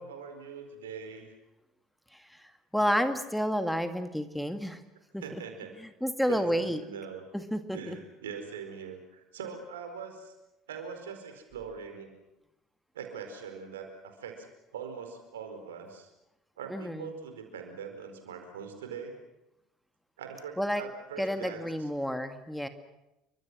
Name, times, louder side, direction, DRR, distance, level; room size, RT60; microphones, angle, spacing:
voice 1, 0.0-1.3 5.2-5.7 6.3-7.2 7.7-10.3 10.7-12.1 12.9-16.1 16.6-19.2 20.2-21.9, right 6 dB, 75° right, 6 dB, 4.6 m, -42 dB
voice 2, 2.1-2.4 2.7-4.8 5.1-5.4 5.8-6.8 7.3-8.0 16.7-17.1 20.6-20.8 21.2-22.7, equal, ahead, 8 dB, 2.1 m, -30 dB
29.0 x 24.5 x 6.2 m, 0.93 s
figure-of-eight pair, 60°, 0 cm